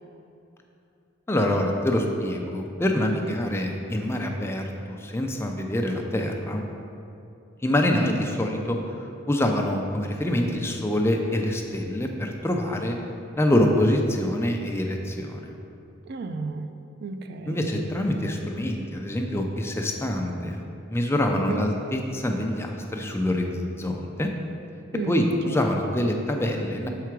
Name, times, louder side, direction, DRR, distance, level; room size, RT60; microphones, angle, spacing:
voice 1, 1.3-6.7 7.6-8.8 9.3-13.0 13.4-15.5 17.5-20.6 20.9-24.3 25.1-26.9, left 1 dB, 10° left, 2 dB, 0.4 m, -25 dB
voice 2, 16.1-17.7 21.3-21.6 24.9-25.7, right 3 dB, 50° right, 7 dB, 0.3 m, -33 dB
6.7 x 4.7 x 4.6 m, 2.8 s
head